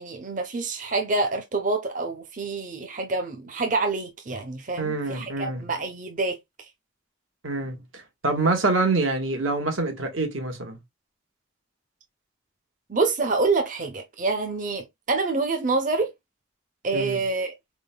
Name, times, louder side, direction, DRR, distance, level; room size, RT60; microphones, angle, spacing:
voice 1, 0.0-6.4 12.9-16.1 16.8-17.5, right 3 dB, 40° right, 0.7 m, -27 dB
voice 2, 4.8-5.7 7.4-10.8 16.9-17.2, right 3 dB, 85° right, 1.4 m, -26 dB
4.3 x 3.6 x 2.2 m
head